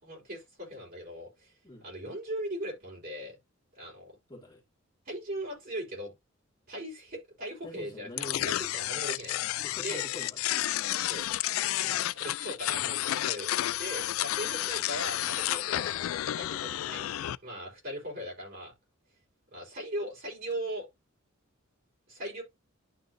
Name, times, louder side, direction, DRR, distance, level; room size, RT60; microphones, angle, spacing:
voice 1, 0.0-1.5 1.8-3.4 3.7-4.1 5.1-6.1 6.7-9.4 9.8-10.0 11.1-11.2 12.1-13.5 13.8-15.9 16.2-18.7 19.5-20.9 22.1-22.4, right 1 dB, 45° right, 4.2 m, -39 dB
voice 2, 4.3-4.6 7.6-8.6 9.6-10.4 11.7-12.0, left 1 dB, 20° left, 2.1 m, -45 dB
sound 1, 8.2-17.4, left 14 dB, 85° left, 0.3 m, -31 dB
11.5 x 3.8 x 2.6 m
head